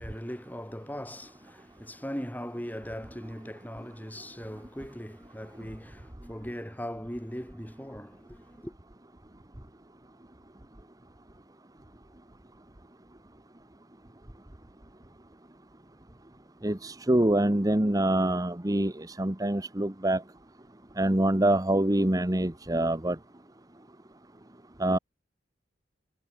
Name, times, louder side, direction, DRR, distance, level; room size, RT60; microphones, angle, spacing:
voice 1, 0.0-8.7, equal, 10° left, 7.6 m, -39 dB
voice 2, 16.6-20.2 21.0-23.2 24.8-25.0, right 1 dB, 20° right, 1.1 m, -25 dB
head